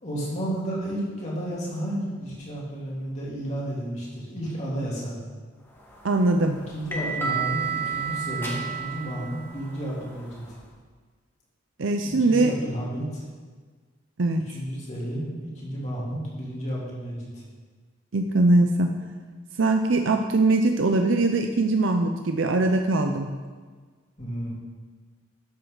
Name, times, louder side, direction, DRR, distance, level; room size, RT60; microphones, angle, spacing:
voice 1, 0.0-5.2 6.7-10.4 12.0-13.2 14.3-17.4 24.2-24.5, right 1 dB, 40° left, -6 dB, 3.2 m, -32 dB
sound 1, 5.8-10.6, right 6 dB, 10° left, 1.4 m, -32 dB
voice 2, 6.0-6.6 11.8-12.5 14.2-14.4 18.1-18.9 19.6-23.4, right 2 dB, 80° right, 5 dB, 0.6 m, -21 dB
12.0 x 7.8 x 4.0 m, 1.5 s
head